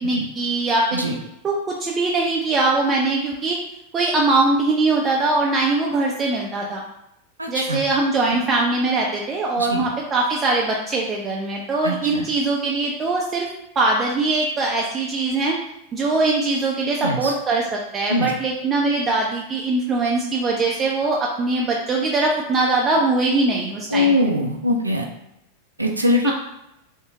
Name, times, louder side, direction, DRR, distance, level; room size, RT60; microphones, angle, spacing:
voice 1, 0.0-1.2 1.4-3.6 3.9-6.8 7.5-13.5 13.8-15.6 15.9-24.2 26.2-26.3, right 3 dB, 25° right, -2 dB, 0.4 m, -21 dB
voice 2, 7.4-7.8 9.6-9.9 11.8-12.3 17.0-17.3 18.1-18.3 23.9-25.1 25.8-26.3, left 1 dB, 85° right, 3 dB, 0.4 m, -22 dB
3.6 x 2.0 x 2.7 m, 0.83 s
figure-of-eight pair, 90°, 0 cm